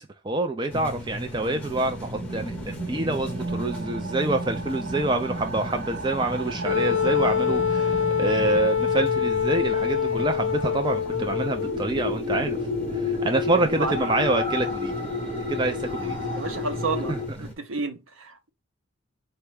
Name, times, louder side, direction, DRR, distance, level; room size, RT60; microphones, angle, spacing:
voice 1, 0.0-12.6 13.0-14.9 15.5-16.2 17.1-17.2, right 2 dB, 20° right, 0.3 m, -26 dB
sound 1, 0.7-17.5, equal, 5° left, 0.9 m, -38 dB
sound 2, 1.7-17.3, left 2 dB, 40° right, 0.9 m, -32 dB
Wind instrument woodwind instrument, 6.7-11.8, left 7 dB, 70° left, 0.6 m, -25 dB
voice 2, 13.7-14.1 16.3-17.1 17.4-18.5, right 4 dB, 75° right, 0.8 m, -31 dB
4.3 x 2.2 x 4.7 m
head